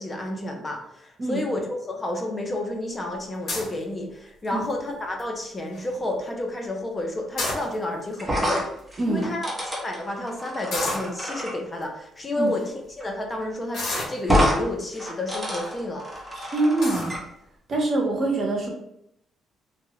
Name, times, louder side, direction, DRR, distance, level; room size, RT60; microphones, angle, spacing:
voice 1, 0.0-8.6 9.1-12.6 13.0-16.1, left 1 dB, 25° left, 1 dB, 0.6 m, -30 dB
sound 1, 3.5-3.8 4.4-4.8 5.2-5.3 5.5-5.9 7.2-8.1 8.8-8.9 9.1-9.3 10.7-11.1 11.8-11.9 12.5-12.7 13.7-14.6 15.4-15.7 16.2-16.3 16.8-17.1, left 2 dB, 65° left, 1.1 m, -30 dB
sound 2, 8.2-11.5 13.0-13.1 13.4-13.5 14.2-14.6 14.9-17.2, equal, 10° right, 0.9 m, -27 dB
voice 2, 9.0-9.3 12.4-12.5 16.4-17.1 17.7-18.7, right 2 dB, 45° right, 0 dB, 0.8 m, -24 dB
2.9 x 2.2 x 3.0 m, 0.77 s
cardioid pair, 90°, 0 cm